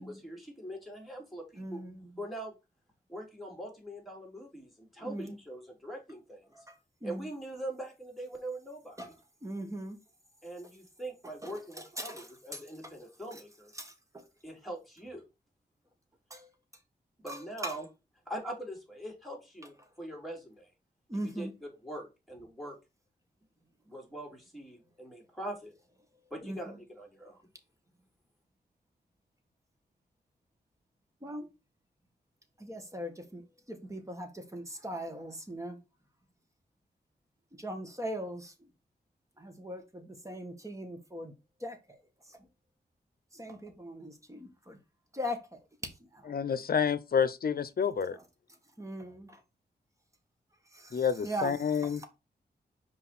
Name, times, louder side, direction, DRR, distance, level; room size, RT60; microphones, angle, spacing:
voice 1, 0.0-1.8 2.2-2.6 3.1-6.4 7.0-9.1 10.4-13.7 14.4-15.2 17.2-17.8 18.3-20.7 21.4-22.8 23.8-25.7 26.3-27.4, right 1 dB, ahead, 3.7 m, -42 dB
voice 2, 1.5-2.2 5.0-5.4 6.5-7.3 9.0-9.1 9.4-10.0 11.4-12.9 13.3-13.4 13.7-14.3 16.3-16.5 17.3-17.8 21.1-21.5 26.4-26.8 31.2-31.5 32.6-35.8 37.6-38.7 39.4-41.3 41.6-42.0 42.3-42.5 43.3-44.8 45.1-46.3 48.1-48.2 48.8-49.4 50.7-52.0, equal, 20° right, 1.9 m, -41 dB
voice 3, 46.3-48.2 50.9-52.0, left 7 dB, 60° left, 0.8 m, -29 dB
5.7 x 4.9 x 4.3 m
wide cardioid pair, 95°, 17 cm